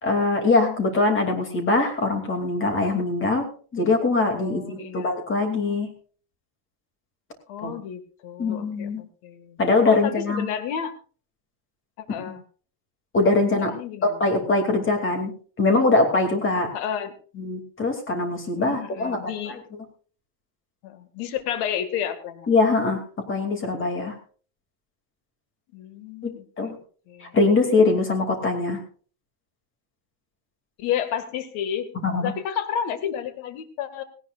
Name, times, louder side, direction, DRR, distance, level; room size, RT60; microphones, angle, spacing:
voice 1, 0.0-5.9 7.6-7.7 8.4-9.0 9.6-10.5 13.1-13.7 14.0-15.3 15.6-16.7 17.4-19.6 22.5-24.2 26.6-26.8 27.2-28.8 32.0-32.3, left 3 dB, 25° left, 5 dB, 2.7 m, -22 dB
voice 2, 4.3-5.2 7.5-9.6 9.8-10.9 12.0-12.4 13.7-14.2 16.7-17.1 18.5-19.6 20.8-22.5 25.7-26.4 27.1-27.4 30.8-31.9 32.2-34.0, left 9 dB, 75° left, 9 dB, 2.1 m, -31 dB
17.5 x 17.5 x 2.5 m, 0.41 s
cardioid pair, 170°, 48 cm